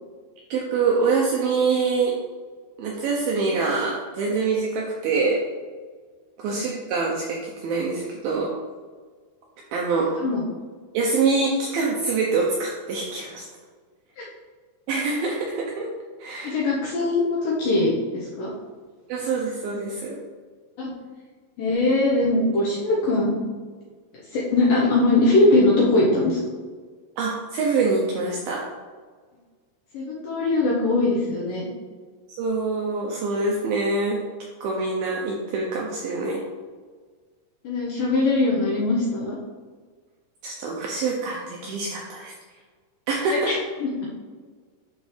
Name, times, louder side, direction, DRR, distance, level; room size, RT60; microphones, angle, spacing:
voice 1, 0.5-2.2 2.8-5.4 6.4-8.5 9.7-10.1 10.9-13.5 14.9-15.9 16.2-16.6 19.1-20.2 27.2-28.6 32.4-34.2 34.6-36.4 40.4-42.3 43.1-43.5, right 4 dB, 80° right, -1 dB, 2.2 m, -25 dB
voice 2, 16.4-18.5 20.8-20.9 21.6-23.4 24.3-26.4 29.9-31.7 37.6-39.4 43.3-43.5 43.8-44.1, left 2 dB, 70° left, -4 dB, 2.1 m, -21 dB
11.5 x 4.5 x 3.2 m, 1.5 s
omnidirectional pair, 5.1 m